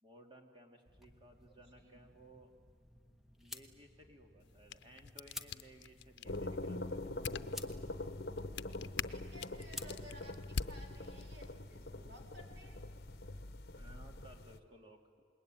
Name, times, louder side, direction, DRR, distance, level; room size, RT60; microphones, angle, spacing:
voice 1, 0.0-2.5 3.4-7.1 13.7-15.2, right 1 dB, 25° right, 3 dB, 2.4 m, -60 dB
sound 1, 0.9-11.2, left 1 dB, ahead, 1.0 m, -54 dB
sound 2, 4.4-11.5, left 6 dB, 85° left, 0.6 m, -46 dB
sound 3, 6.2-14.6, left 2 dB, 55° left, 1.1 m, -44 dB
voice 2, 9.1-12.8, equal, 80° right, 1 dB, 3.9 m, -57 dB
27.0 x 21.0 x 9.1 m, 2.1 s
head